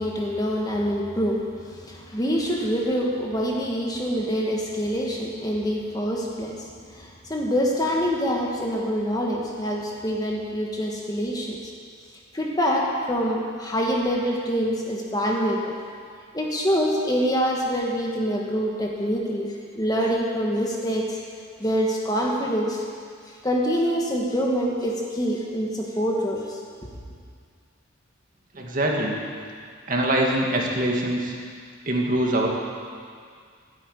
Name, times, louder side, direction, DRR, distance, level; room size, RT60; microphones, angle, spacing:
voice 1, 0.0-11.6 12.3-15.7 16.3-21.2 21.6-22.8 23.4-26.6, equal, 20° left, -1 dB, 1.5 m, -25 dB
voice 2, 28.5-29.2 29.9-31.3 31.9-32.5, right 1 dB, 40° right, -1 dB, 2.0 m, -23 dB
13.5 x 9.4 x 9.3 m, 2.1 s
head